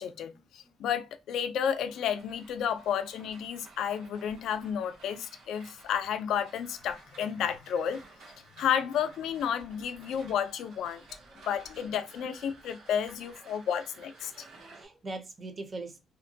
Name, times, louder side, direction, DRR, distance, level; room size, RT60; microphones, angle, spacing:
voice 1, 0.0-8.0 8.6-11.0 11.5-14.3, left 8 dB, 75° left, 0.3 m, -31 dB
sound 1, 1.9-14.8, right 3 dB, 85° right, 0.8 m, -54 dB
voice 2, 14.2-16.0, right 2 dB, 25° right, 0.5 m, -42 dB
2.7 x 2.1 x 2.6 m
cardioid pair, 165°, 0 cm